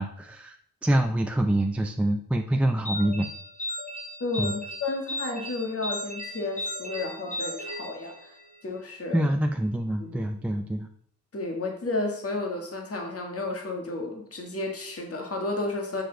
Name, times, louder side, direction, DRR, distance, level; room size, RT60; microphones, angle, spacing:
voice 1, 0.0-3.3 4.4-4.5 9.1-10.9, right 1 dB, 5° right, 3 dB, 0.4 m, -26 dB
sound 1, 2.9-8.6, left 1 dB, 20° left, 3.1 m, -36 dB
voice 2, 4.2-8.3 8.6-9.3 10.0-10.2 11.3-16.0, left 2 dB, 40° left, 2 dB, 1.6 m, -32 dB
6.9 x 6.4 x 3.9 m, 0.63 s
cardioid pair, 100°, 37 cm